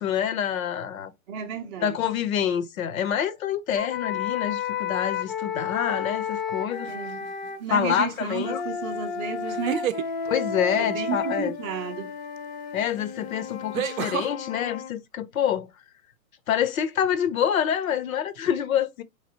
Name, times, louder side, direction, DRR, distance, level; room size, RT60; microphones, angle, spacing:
voice 1, 0.0-1.1 1.8-6.9 7.7-8.6 10.3-11.5 12.7-15.7 16.5-19.0, left 9 dB, 70° left, 0.8 m, -26 dB
voice 2, 1.3-1.9 6.9-7.3 7.6-10.1 10.7-12.1, right 6 dB, 20° right, 0.5 m, -32 dB
sound 1, 3.8-7.6 8.4-14.9, left 6 dB, 35° left, 0.6 m, -32 dB
sound 2, 6.9-7.3 9.4-10.1 12.4-12.5 13.7-14.3, right 11 dB, 70° right, 0.6 m, -29 dB
3.8 x 3.2 x 2.8 m
hypercardioid pair, 140°, 43 cm